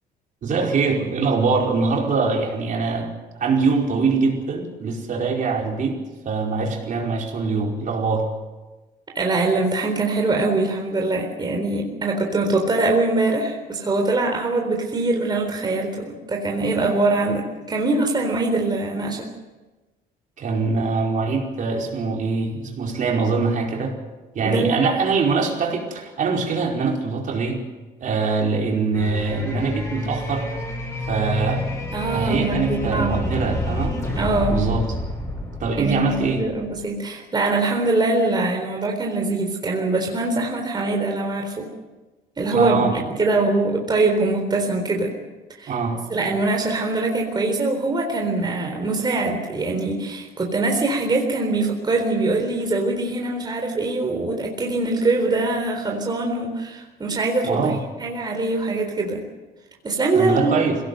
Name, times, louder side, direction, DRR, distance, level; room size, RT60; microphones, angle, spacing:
voice 1, 0.4-3.1 3.4-6.0 6.2-8.3 20.4-24.0 24.3-27.6 28.0-30.5 31.1-31.6 32.1-34.0 34.5-34.9 35.6-36.4 42.5-42.9 45.7-46.0 57.4-57.8 60.1-60.8, right 4 dB, 50° right, 0 dB, 4.8 m, -23 dB
voice 2, 9.1-19.3 24.4-25.0 31.9-33.4 34.1-34.7 35.8-41.7 42.4-45.1 45.6-45.7 46.1-57.7 58.0-59.2 59.8-60.5, right 2 dB, 25° right, 1 dB, 4.0 m, -23 dB
sound 1, 28.9-36.8, left 1 dB, 20° left, 7.9 m, -29 dB
22.0 x 17.5 x 8.0 m, 1.2 s
cardioid pair, 110°, 17 cm